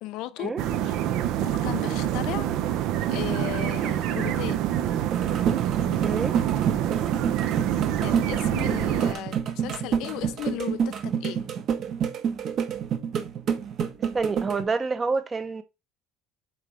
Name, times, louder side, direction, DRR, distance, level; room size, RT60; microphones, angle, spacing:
voice 1, 0.0-1.0 1.4-2.5 3.1-4.6 8.0-11.5, left 16 dB, 65° left, 0.5 m, -35 dB
sound 1, 0.6-9.1, right 11 dB, 60° right, 0.7 m, -26 dB
sound 2, 4.9-14.6, right 7 dB, 40° right, 1.1 m, -29 dB
voice 2, 6.0-6.4 14.1-15.6, right 4 dB, 20° right, 0.8 m, -27 dB
7.8 x 4.8 x 3.3 m
cardioid pair, 175°, 0 cm